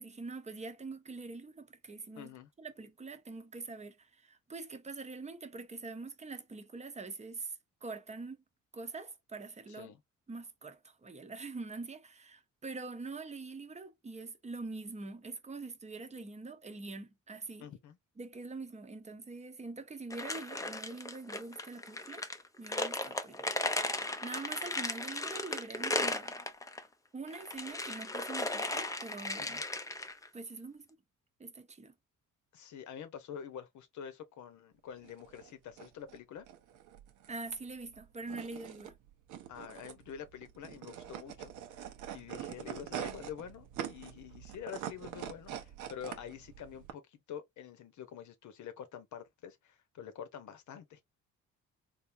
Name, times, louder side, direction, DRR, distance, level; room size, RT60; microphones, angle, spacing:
voice 1, 0.0-2.3 2.6-8.4 8.7-9.9 10.3-17.7 18.2-22.2 22.6-23.5 23.9-26.4 27.1-29.6 30.3-30.9 31.4-31.9 37.3-39.0, right 3 dB, 20° right, 0.7 m, -44 dB
voice 2, 2.2-2.5 9.7-10.0 17.6-18.0 29.4-29.6 32.5-36.5 39.5-41.5 42.1-51.0, left 8 dB, 75° left, 0.9 m, -47 dB
sound 1, 20.1-26.8 27.3-30.3, left 2 dB, 10° left, 0.5 m, -36 dB
sound 2, 35.0-46.9, right 10 dB, 80° right, 0.7 m, -45 dB
3.6 x 2.6 x 2.6 m
cardioid pair, 90°, 30 cm